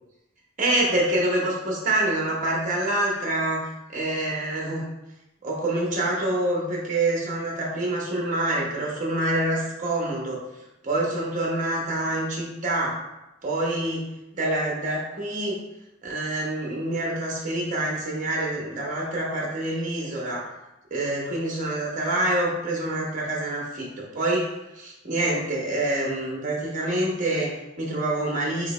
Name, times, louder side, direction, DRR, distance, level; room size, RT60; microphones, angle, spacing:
voice 1, 0.6-4.8 5.4-10.4 10.8-12.9 13.4-14.1 14.3-15.6 16.0-20.5 20.9-24.5 24.7-28.7, right 1 dB, 40° right, -2 dB, 1.0 m, -26 dB
3.2 x 2.9 x 4.2 m, 0.95 s
head